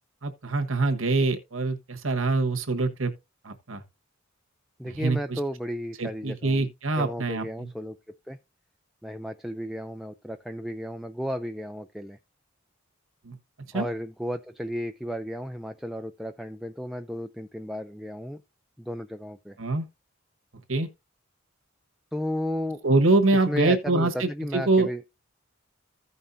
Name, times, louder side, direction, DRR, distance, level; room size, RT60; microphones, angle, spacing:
voice 1, 0.2-3.1 3.4-3.8 5.0-5.4 6.0-7.7 13.2-13.4 13.7-13.9 19.6-19.9 20.7-20.9 22.8-24.9, right 2 dB, 80° right, 1.4 m, -24 dB
voice 2, 4.8-6.7 7.0-8.4 9.0-12.2 13.7-18.4 18.8-19.6 22.1-22.8 23.5-25.0, equal, ahead, 0.4 m, -33 dB
15.0 x 5.5 x 2.6 m
head